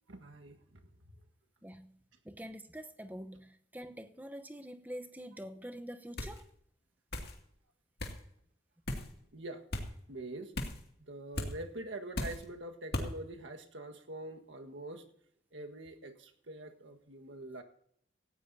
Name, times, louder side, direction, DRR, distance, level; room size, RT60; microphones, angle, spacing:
voice 1, 0.1-0.6 9.3-9.6 10.1-10.5 11.1-15.0 15.5-17.6, right 1 dB, 90° right, 1.6 m, -44 dB
voice 2, 1.6-1.9 2.2-6.5, equal, 10° right, 0.9 m, -45 dB
sound 1, 6.2-6.4 7.1-7.3 8.0-8.2 8.9-9.1 9.7-9.9 10.5-10.8 11.3-11.5 12.1-12.4 12.9-13.1, left 1 dB, 55° left, 2.4 m, -36 dB
18.0 x 15.0 x 2.8 m
head